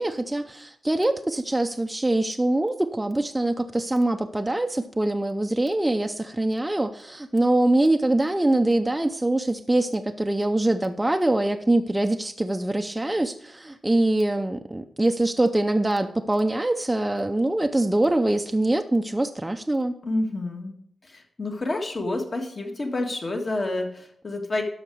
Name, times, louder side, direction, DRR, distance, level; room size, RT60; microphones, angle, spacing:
voice 1, 0.0-19.9, right 1 dB, 10° right, 5 dB, 0.5 m, -24 dB
voice 2, 20.0-20.7 21.0-24.6, left 2 dB, 35° left, 3 dB, 1.6 m, -29 dB
12.5 x 5.8 x 4.6 m, 0.69 s
wide cardioid pair, 110°, 0 cm